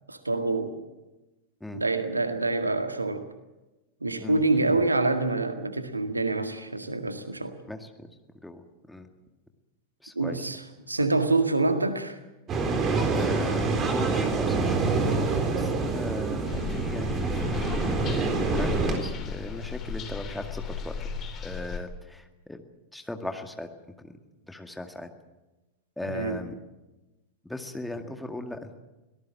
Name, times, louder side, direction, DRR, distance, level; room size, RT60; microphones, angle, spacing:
voice 1, 0.1-0.8 1.7-3.3 4.0-7.6 10.2-10.6 10.9-12.2 26.1-26.4, right 2 dB, 80° right, 8 dB, 1.8 m, -26 dB
voice 2, 7.7-8.1 8.4-9.1 10.0-10.5 11.0-11.1 13.1-15.3 15.5-20.9 21.4-22.6 22.9-23.7 24.0-24.1 24.5-25.1 26.0-26.5 27.4-28.8, left 1 dB, 5° left, 6 dB, 2.1 m, -38 dB
sound 1, 12.5-19.0, right 3 dB, 25° right, 4.0 m, -26 dB
sound 2, 16.5-21.8, left 5 dB, 30° left, 3.3 m, -35 dB
23.5 x 18.5 x 7.5 m, 1.0 s
figure-of-eight pair, 90°, 0 cm